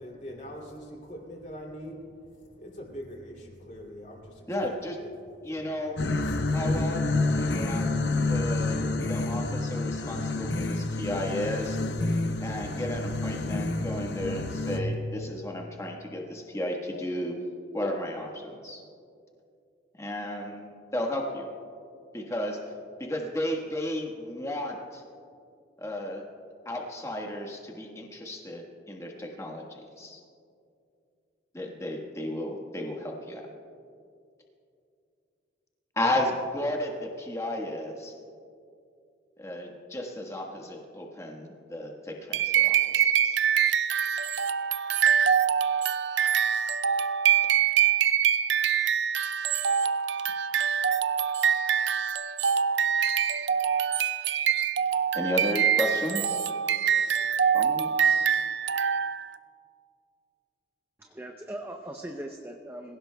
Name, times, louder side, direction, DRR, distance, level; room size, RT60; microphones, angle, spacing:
voice 1, 0.0-5.8 6.2-6.6, equal, 40° left, -1 dB, 2.7 m, -44 dB
voice 2, 4.5-5.0 5.4-6.0 6.5-7.0 7.4-11.8 12.4-17.4 17.7-18.8 20.0-21.5 22.1-22.6 23.0-25.0 25.8-26.2 26.6-30.2 31.5-33.5 36.0-38.1 39.4-43.4 55.1-56.4 57.5-58.3, left 1 dB, 15° left, 0 dB, 1.4 m, -33 dB
sound 1, 6.0-14.8, left 2 dB, 70° left, 0.8 m, -28 dB
sound 2, 42.3-59.4, right 8 dB, 70° right, 0.4 m, -25 dB
voice 3, 61.0-63.0, right 1 dB, 10° right, 2 dB, 0.6 m, -40 dB
25.0 x 16.0 x 2.3 m, 2.5 s
head